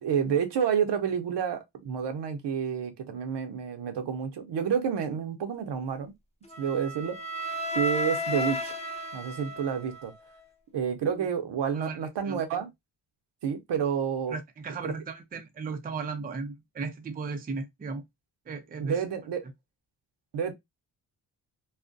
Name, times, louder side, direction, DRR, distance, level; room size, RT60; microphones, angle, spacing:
voice 1, 0.0-6.1 6.6-7.2 7.8-8.7 9.1-10.1 10.7-12.7 13.4-14.4 14.8-14.9 18.8-19.5 20.3-20.5, right 7 dB, 70° right, 0.7 m, -29 dB
Wind instrument woodwind instrument, 6.5-10.5, left 1 dB, 15° left, 0.7 m, -34 dB
voice 2, 14.3-18.0 18.5-19.0, right 4 dB, 20° right, 0.4 m, -36 dB
2.4 x 2.1 x 2.5 m
cardioid pair, 70°, 43 cm